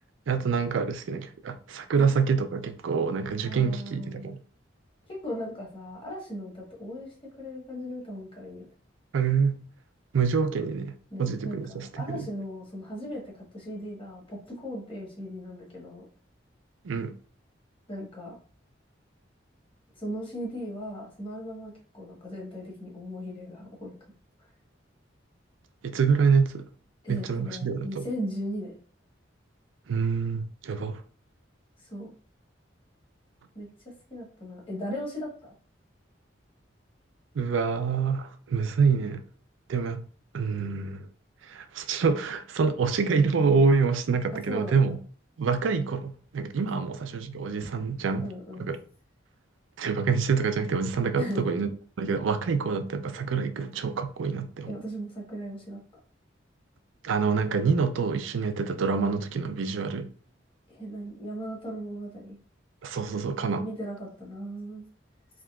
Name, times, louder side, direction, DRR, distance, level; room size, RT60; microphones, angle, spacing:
voice 1, 0.3-4.4 9.1-9.6 10.1-12.3 16.8-17.1 25.8-26.7 27.1-28.1 29.9-31.0 37.3-39.2 39.7-40.0 40.3-41.1 41.4-45.0 45.4-48.3 48.6-48.8 49.8-51.7 52.0-54.7 57.0-60.1 62.8-63.6, right 5 dB, 85° right, 0.4 m, -26 dB
voice 2, 3.4-4.4 5.1-8.7 11.1-16.0 17.9-18.4 19.9-23.9 27.0-28.7 31.8-32.1 33.5-35.5 44.3-45.0 46.7-46.9 48.2-48.7 51.2-51.5 54.7-55.8 60.7-62.4 63.6-64.8, equal, 30° left, 1.1 m, -37 dB
3.6 x 2.8 x 2.3 m
head